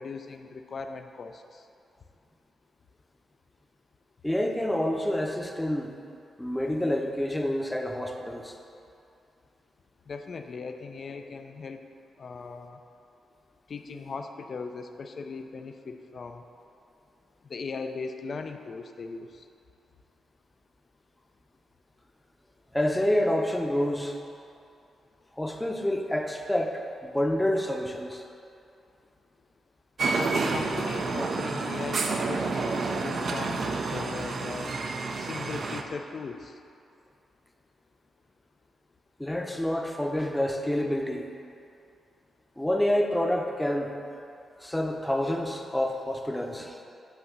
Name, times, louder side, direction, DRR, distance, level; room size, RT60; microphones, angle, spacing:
voice 1, 0.0-1.6 10.1-11.8 12.2-12.8 13.7-16.4 17.5-19.4 30.2-34.7 35.2-36.5, left 4 dB, 55° left, 6 dB, 0.4 m, -38 dB
voice 2, 4.2-5.9 6.4-8.5 22.7-24.2 25.4-28.2 39.2-41.3 42.6-43.9 44.6-46.8, left 1 dB, 5° left, 2 dB, 0.7 m, -28 dB
sound 1, 30.0-35.8, right 3 dB, 60° right, 0.5 m, -29 dB
8.0 x 2.9 x 6.0 m, 2.6 s
cardioid pair, 70°, 0 cm